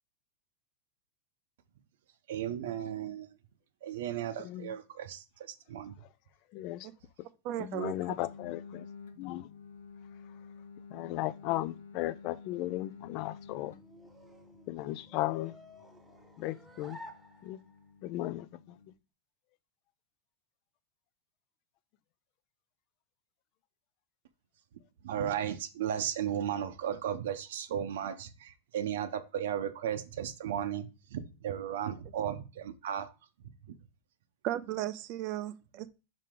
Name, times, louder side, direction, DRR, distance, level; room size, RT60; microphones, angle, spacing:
voice 1, 2.3-3.3 3.8-5.9 25.0-33.1, right 9 dB, 70° right, 0.8 m, -35 dB
voice 2, 4.4-4.7 6.5-6.9 7.6-8.9 9.2-9.5 10.9-13.7 14.7-15.6 16.4-17.0 17.4-17.6 18.0-18.8, left 16 dB, 35° left, 0.3 m, -36 dB
voice 3, 7.4-7.9 34.4-35.9, right 13 dB, 35° right, 0.4 m, -35 dB
sound 1, 8.1-18.9, left 5 dB, 85° left, 0.9 m, -52 dB
sound 2, 13.0-18.0, equal, 5° right, 0.7 m, -54 dB
5.7 x 4.9 x 3.7 m
supercardioid pair, 170°, 0 cm